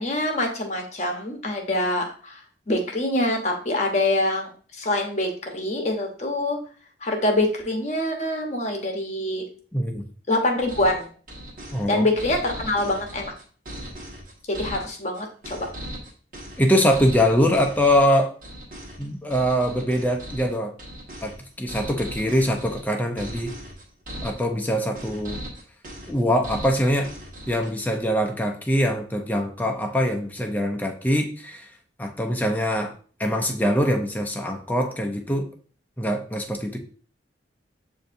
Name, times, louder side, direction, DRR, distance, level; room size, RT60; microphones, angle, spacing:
voice 1, 0.0-2.4 2.7-6.6 7.0-9.4 10.3-11.1 11.9-13.3 14.5-15.7, left 1 dB, 40° left, 2 dB, 0.9 m, -25 dB
voice 2, 9.7-10.0 11.7-12.1 16.6-18.3 19.0-20.7 21.2-21.3 21.6-23.5 24.2-25.4 26.1-27.1 27.5-31.7 32.0-32.9 33.2-35.5 36.0-36.8, equal, 10° left, 2 dB, 0.5 m, -23 dB
sound 1, 10.6-28.0, equal, 45° right, 1.2 m, -38 dB
7.8 x 2.7 x 2.5 m, 0.42 s
head